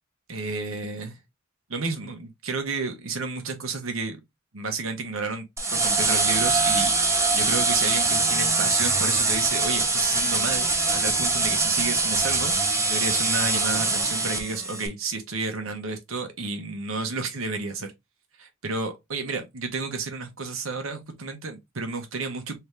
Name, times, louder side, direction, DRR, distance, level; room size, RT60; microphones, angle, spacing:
voice 1, 0.3-1.2 1.7-4.2 4.5-5.4 5.7-17.9 18.4-22.6, right 4 dB, 75° right, 1.0 m, -31 dB
sound 1, 5.6-14.9, right 3 dB, 15° right, 0.6 m, -23 dB
3.4 x 2.8 x 3.2 m
head